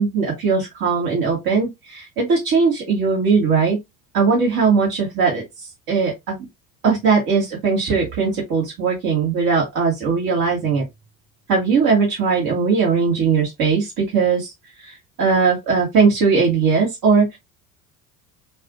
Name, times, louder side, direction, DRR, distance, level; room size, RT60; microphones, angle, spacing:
voice 1, 0.0-3.8 4.1-5.4 5.9-6.4 6.8-10.8 11.5-14.5 15.2-17.4, right 5 dB, 55° right, 2.3 m, -19 dB
5.3 x 2.6 x 2.6 m
hypercardioid pair, 65°, 43 cm